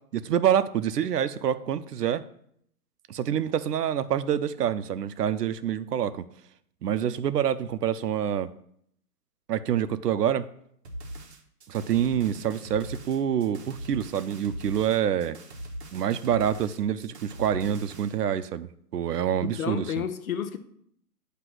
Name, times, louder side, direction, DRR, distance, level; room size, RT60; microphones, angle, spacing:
voice 1, 0.1-2.2 3.1-6.2 6.8-8.5 9.5-10.4 11.7-15.4 15.9-20.0, right 9 dB, 80° right, 0.6 m, -26 dB
sound 1, 10.8-18.2, right 1 dB, 45° right, 1.0 m, -41 dB
voice 2, 19.4-20.6, left 8 dB, 65° left, 0.8 m, -31 dB
7.9 x 3.0 x 5.9 m
hypercardioid pair, 175°, 47 cm